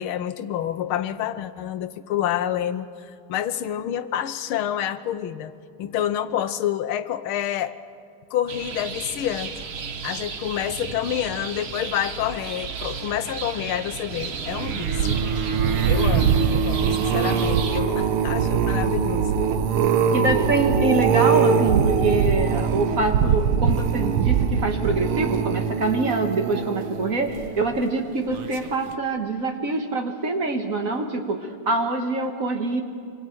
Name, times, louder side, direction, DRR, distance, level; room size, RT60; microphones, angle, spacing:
voice 1, 0.0-5.5 5.8-7.7 8.3-9.6 10.0-15.2 15.8-19.3, left 11 dB, 80° left, 12 dB, 1.6 m, -28 dB
sound 1, 8.5-17.8, right 6 dB, 60° right, 0.6 m, -34 dB
sound 2, 14.5-27.8 28.3-28.7 28.9-29.0, right 7 dB, 80° right, 1.8 m, -22 dB
voice 2, 20.1-32.8, right 2 dB, 40° right, 4 dB, 1.7 m, -25 dB
26.5 x 24.5 x 4.6 m, 2.4 s
omnidirectional pair, 2.4 m